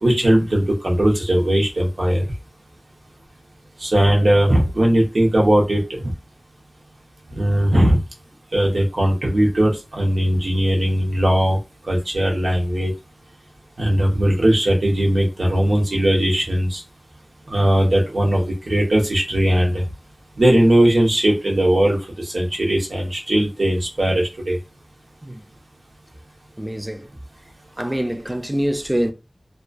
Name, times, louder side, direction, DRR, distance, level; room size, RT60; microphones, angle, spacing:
voice 1, 0.0-2.2 3.8-5.8 7.3-8.0 8.5-11.6 11.9-12.9 13.8-16.8 17.5-19.7 20.4-24.6, right 1 dB, 80° right, 0.8 m, -18 dB
voice 2, 26.6-27.1 27.8-29.1, equal, 15° right, 0.3 m, -24 dB
2.2 x 2.2 x 2.5 m
wide cardioid pair, 65°, 0 cm